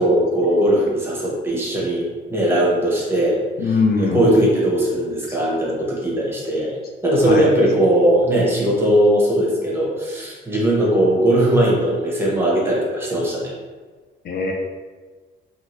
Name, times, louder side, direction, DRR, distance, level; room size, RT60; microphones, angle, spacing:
voice 1, 0.0-3.4 4.0-6.8 7.0-13.5, right 1 dB, 10° right, -4 dB, 0.9 m, -19 dB
voice 2, 3.6-4.3 5.3-5.4 7.3-7.5 14.2-14.5, left 4 dB, 55° left, 1 dB, 0.4 m, -21 dB
2.7 x 2.4 x 3.1 m, 1.4 s
cardioid pair, 105°, 20 cm